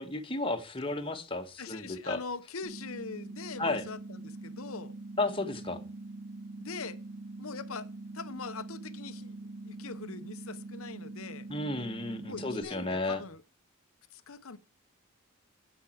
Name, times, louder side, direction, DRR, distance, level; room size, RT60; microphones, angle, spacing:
voice 1, 0.0-2.2 3.6-3.8 5.2-5.8 11.5-13.2, left 2 dB, 25° left, 1.5 m, -33 dB
voice 2, 1.6-4.9 6.6-7.0 7.4-7.9 8.1-9.4 9.6-11.5 12.3-13.4 14.1-14.6, left 4 dB, 70° left, 0.9 m, -42 dB
sound 1, 2.6-12.6, right 2 dB, 80° right, 2.5 m, -44 dB
9.5 x 8.3 x 4.6 m
head